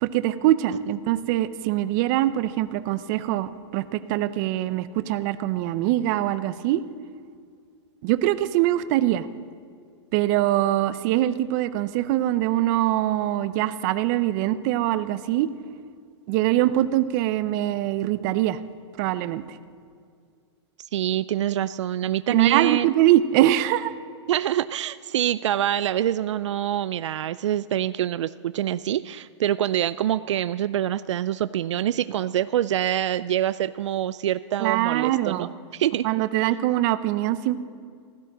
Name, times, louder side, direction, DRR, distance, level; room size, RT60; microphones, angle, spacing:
voice 1, 0.0-6.8 8.0-9.3 10.1-15.5 16.3-18.6 19.0-19.4 22.3-23.9 34.6-35.5 36.0-37.6, right 14 dB, 40° right, 13 dB, 0.7 m, -23 dB
voice 2, 20.9-22.9 24.3-36.1, right 11 dB, 80° right, 14 dB, 0.4 m, -25 dB
16.0 x 13.0 x 6.2 m, 2.2 s
hypercardioid pair, 140°, 15 cm